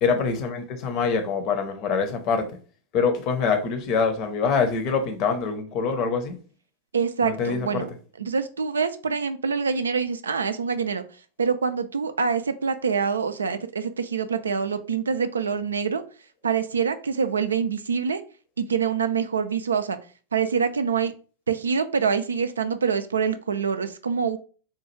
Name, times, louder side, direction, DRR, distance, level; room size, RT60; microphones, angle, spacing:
voice 1, 0.0-2.6 2.9-6.4 7.2-7.9, left 5 dB, 40° left, 0.7 m, -25 dB
voice 2, 6.9-7.9 8.2-11.0 11.4-16.0 16.4-18.2 18.6-20.0 20.3-21.1 21.5-24.4, right 6 dB, 70° right, 0.3 m, -25 dB
4.2 x 2.3 x 3.0 m
figure-of-eight pair, 90°, 0 cm